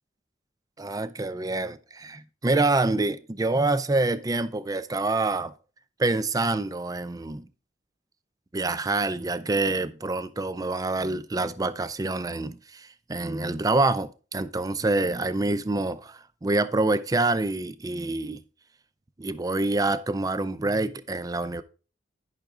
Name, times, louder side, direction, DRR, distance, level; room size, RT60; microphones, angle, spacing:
voice 1, 0.8-5.5 6.0-7.5 8.5-18.4 19.2-21.6, right 2 dB, 20° right, 0.5 m, -26 dB
10.5 x 5.7 x 3.7 m
head